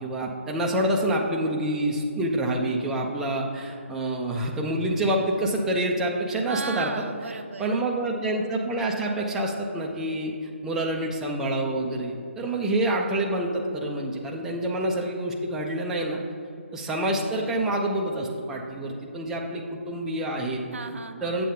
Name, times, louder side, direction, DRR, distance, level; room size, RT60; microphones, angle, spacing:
voice 1, 0.0-7.0 7.6-10.3 10.6-16.2 16.7-20.6 21.2-21.4, right 1 dB, 5° right, -1 dB, 0.5 m, -27 dB
voice 2, 6.5-7.7 20.7-21.4, right 4 dB, 70° right, 7 dB, 0.7 m, -35 dB
8.2 x 7.0 x 3.8 m, 2.4 s
figure-of-eight pair, 155°, 7 cm